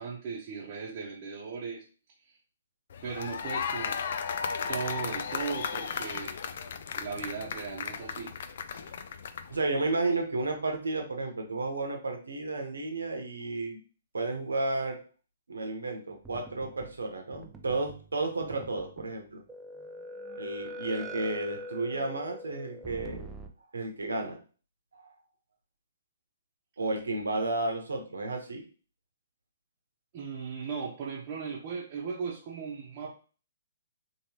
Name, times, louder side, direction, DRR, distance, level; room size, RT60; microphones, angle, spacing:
voice 1, 0.0-1.8 2.2-2.4 3.0-4.0 4.7-6.3 6.9-8.3 8.7-8.8 30.1-33.1, right 5 dB, 40° right, -4 dB, 0.9 m, -37 dB
sound 1, 2.9-9.6, left 6 dB, 60° left, 0.4 m, -35 dB
voice 2, 9.5-13.8 14.1-15.0 15.5-19.4 20.4-23.3 23.7-24.4 26.8-28.6, right 2 dB, 80° right, 3 dB, 0.9 m, -32 dB
sound 2, 16.2-17.0 17.3-18.1 18.4-19.1 19.5-23.5, right 1 dB, 10° right, 0.5 m, -43 dB
3.1 x 3.0 x 2.9 m, 0.38 s
figure-of-eight pair, 130°, 0 cm